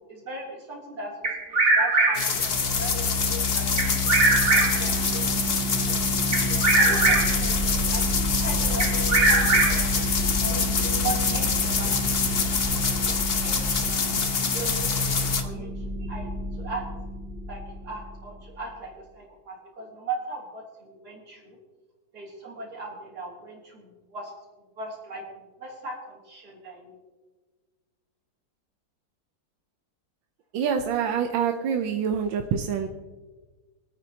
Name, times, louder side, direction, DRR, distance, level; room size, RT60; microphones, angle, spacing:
voice 1, 0.0-5.5 6.7-7.6 7.9-16.8 17.5-21.6 22.1-24.3 24.8-25.2 25.6-27.0, right 3 dB, 55° right, -3 dB, 3.6 m, -39 dB
Bird vocalization bird call bird song, 1.2-2.4 3.8-5.0 6.3-7.5 8.8-10.0, right 2 dB, 40° right, 1.8 m, -21 dB
sound 1, 2.1-15.4, left 5 dB, 45° left, 0.9 m, -26 dB
sound 2, 2.3-18.6, equal, 90° left, 2.8 m, -30 dB
voice 2, 30.5-32.9, right 7 dB, 90° right, 5 dB, 1.5 m, -26 dB
24.5 x 9.0 x 2.9 m, 1.3 s
omnidirectional pair, 2.0 m